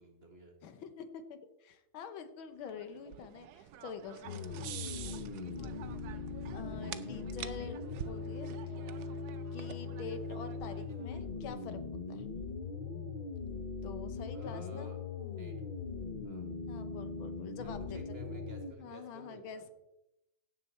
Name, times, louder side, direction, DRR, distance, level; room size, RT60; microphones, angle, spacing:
voice 1, 0.0-0.5 14.3-15.6 16.2-16.5 17.6-19.6, right 3 dB, 30° right, 4 dB, 1.9 m, -52 dB
voice 2, 0.6-4.9 6.5-7.8 8.1-8.8 9.5-11.8 12.1-12.3 13.8-14.9 16.7-18.0 18.8-19.8, left 6 dB, 90° left, 10 dB, 1.8 m, -46 dB
sound 1, 2.6-11.2, right 10 dB, 65° right, 1.0 m, -48 dB
sound 2, 4.3-18.7, left 4 dB, 45° left, 0.6 m, -40 dB
16.5 x 6.9 x 4.3 m, 0.91 s
omnidirectional pair, 2.1 m